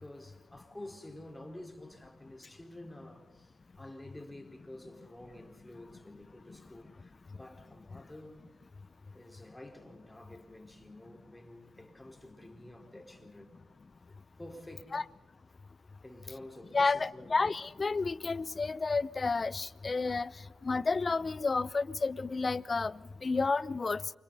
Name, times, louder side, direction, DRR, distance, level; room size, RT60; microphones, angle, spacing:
voice 1, 0.0-8.5 9.1-13.5 14.4-15.0 16.0-17.4, left 1 dB, 15° left, 4.4 m, -50 dB
voice 2, 16.7-20.3 20.6-24.0, left 4 dB, 45° left, 0.7 m, -31 dB
28.5 x 26.0 x 4.1 m
supercardioid pair, 45°, 0 cm